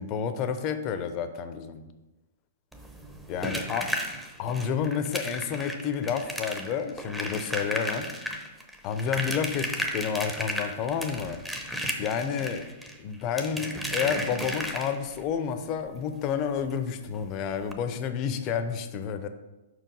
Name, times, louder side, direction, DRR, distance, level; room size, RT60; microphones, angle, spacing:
voice 1, 0.0-1.8 3.3-3.9 4.4-8.1 8.8-11.4 12.0-12.7 13.0-19.3, left 7 dB, 35° left, 9 dB, 0.7 m, -30 dB
sound 1, 2.7-15.2 16.7-16.8 17.1-17.2 17.6-17.7, equal, 5° right, 0.8 m, -34 dB
5.5 x 4.8 x 5.3 m, 1.1 s
hypercardioid pair, 130°, 0 cm